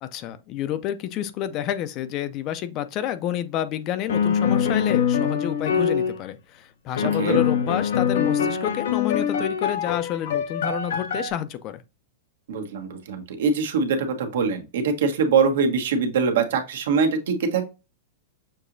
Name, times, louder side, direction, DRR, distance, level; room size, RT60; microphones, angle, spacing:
voice 1, 0.0-11.8, left 11 dB, 30° left, 0.4 m, -29 dB
sound 1, 4.1-6.2 7.0-11.3, left 7 dB, 90° left, 0.8 m, -23 dB
voice 2, 12.5-17.6, right 5 dB, 75° right, 1.1 m, -23 dB
6.5 x 2.9 x 2.6 m
supercardioid pair, 170°, 0 cm